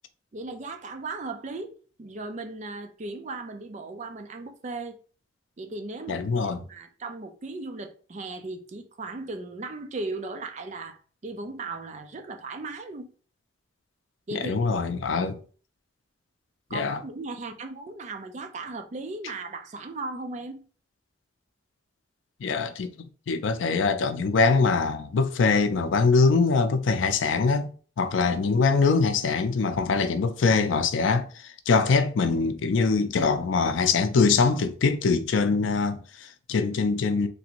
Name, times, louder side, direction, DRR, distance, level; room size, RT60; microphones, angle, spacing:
voice 1, 0.3-5.0 5.6-6.3 6.6-11.0 11.2-13.1 14.3-14.6 16.7-20.6, right 3 dB, 40° right, 0.4 m, -37 dB
voice 2, 6.1-6.6 14.3-15.4 16.7-17.0 22.4-27.7 28.0-37.3, left 4 dB, 85° left, 0.4 m, -23 dB
3.3 x 2.5 x 2.9 m
head